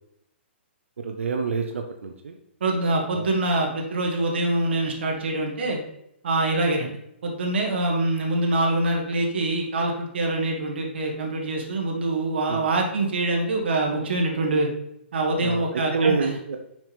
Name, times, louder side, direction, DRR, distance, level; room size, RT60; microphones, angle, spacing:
voice 1, 1.0-2.4 3.1-3.3 12.5-12.7 15.4-15.6 15.9-16.6, right 4 dB, 90° right, 4 dB, 0.8 m, -27 dB
voice 2, 2.6-5.8 6.2-6.9 7.2-14.7 15.1-16.4, right 2 dB, 60° right, 1 dB, 1.7 m, -24 dB
6.0 x 5.7 x 3.4 m, 0.77 s
hypercardioid pair, 170°, 7 cm